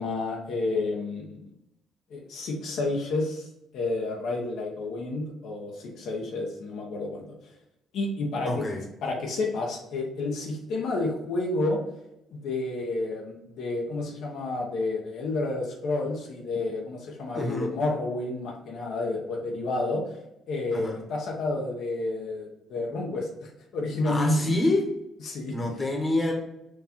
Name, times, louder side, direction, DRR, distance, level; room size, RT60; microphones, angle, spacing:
voice 1, 0.0-1.4 2.1-3.5 3.7-7.2 7.9-8.6 9.0-11.8 12.3-20.0 20.5-24.5 25.2-25.8, left 2 dB, 70° left, -1 dB, 0.9 m, -30 dB
voice 2, 8.4-8.8 17.3-17.7 20.7-21.0 24.0-24.8 25.5-26.3, left 2 dB, 20° left, 1 dB, 1.2 m, -27 dB
4.6 x 2.6 x 4.2 m, 0.86 s
supercardioid pair, 65°, 0 cm